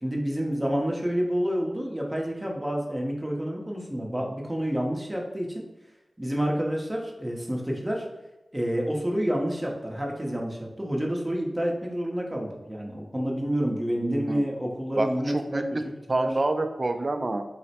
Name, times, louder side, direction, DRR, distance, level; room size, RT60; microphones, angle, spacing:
voice 1, 0.0-5.6 6.2-8.1 8.5-15.6 16.2-16.3, equal, 15° right, -1 dB, 0.7 m, -29 dB
voice 2, 14.0-14.4 15.0-15.8 16.1-17.5, right 2 dB, 45° right, 7 dB, 0.4 m, -27 dB
4.1 x 2.1 x 4.1 m, 1.0 s
wide cardioid pair, 60°, 0 cm